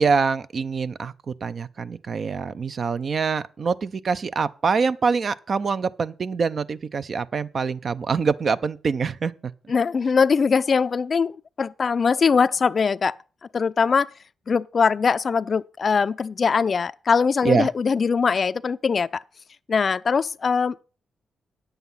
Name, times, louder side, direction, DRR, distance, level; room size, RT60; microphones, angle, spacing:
voice 1, 0.0-9.5 17.4-17.7, right 5 dB, 50° right, 0.5 m, -25 dB
voice 2, 9.7-13.2 13.5-14.1 14.5-19.2 19.7-20.8, left 5 dB, 50° left, 0.4 m, -21 dB
9.4 x 8.0 x 5.5 m
cardioid pair, 70°, 0 cm